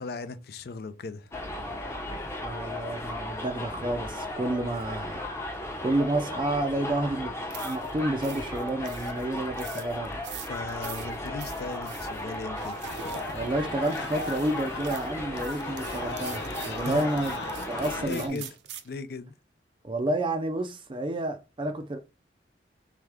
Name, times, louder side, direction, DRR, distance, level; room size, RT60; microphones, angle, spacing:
voice 1, 0.0-1.4 10.5-12.8 16.8-17.1 17.6-18.5 18.8-19.3, left 4 dB, 60° left, 0.4 m, -37 dB
Subway metro underground, 1.3-18.0, left 1 dB, 15° left, 0.7 m, -35 dB
voice 2, 2.4-5.2 5.8-7.4 7.6-10.3 13.3-17.4 17.7-18.4 19.8-22.0, right 1 dB, 30° right, 0.4 m, -30 dB
sound 1, 7.5-18.9, right 9 dB, 75° right, 0.6 m, -45 dB
sound 2, 12.8-18.3, left 3 dB, 75° left, 0.8 m, -39 dB
3.6 x 3.4 x 3.4 m
head